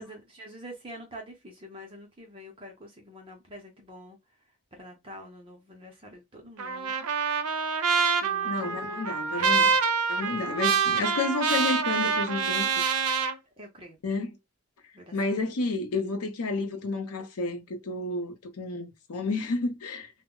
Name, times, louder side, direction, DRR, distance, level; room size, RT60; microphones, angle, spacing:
voice 1, 0.0-4.2 4.7-7.1 8.2-9.0 9.3-9.7 10.4-10.7 13.6-14.0 14.9-15.1, equal, 25° right, 0.6 m, -46 dB
Trumpet, 6.6-13.3, right 5 dB, 85° right, 0.5 m, -26 dB
voice 2, 8.4-9.7 10.1-12.7 14.0-14.4 15.1-20.1, left 3 dB, 80° left, 0.6 m, -31 dB
2.0 x 2.0 x 3.6 m
head